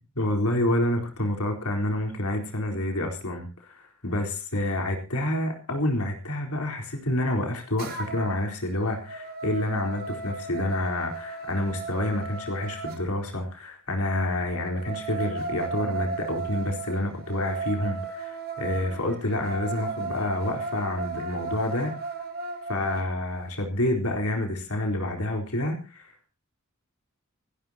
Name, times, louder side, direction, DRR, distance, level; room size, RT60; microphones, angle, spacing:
voice 1, 0.2-21.9 22.7-26.3, left 1 dB, 75° left, 3 dB, 4.2 m, -28 dB
sound 1, 7.8-8.4 8.8-13.0 14.5-23.1, right 4 dB, 45° right, 3.7 m, -35 dB
29.0 x 11.5 x 2.9 m, 0.34 s
head